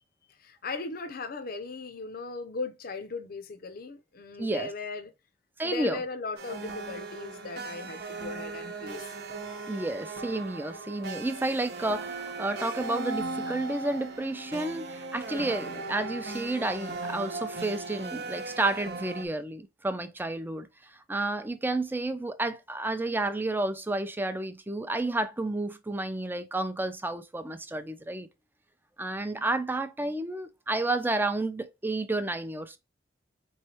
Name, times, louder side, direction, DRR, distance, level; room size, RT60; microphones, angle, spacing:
voice 1, 0.4-5.1 5.6-9.0, left 3 dB, 55° left, 0.6 m, -37 dB
voice 2, 4.4-4.7 5.6-6.0 9.7-20.7 21.1-28.3 29.0-32.8, right 2 dB, 10° right, 0.5 m, -31 dB
sound 1, 6.4-19.3, right 3 dB, 65° right, 0.9 m, -38 dB
4.4 x 3.2 x 2.8 m
head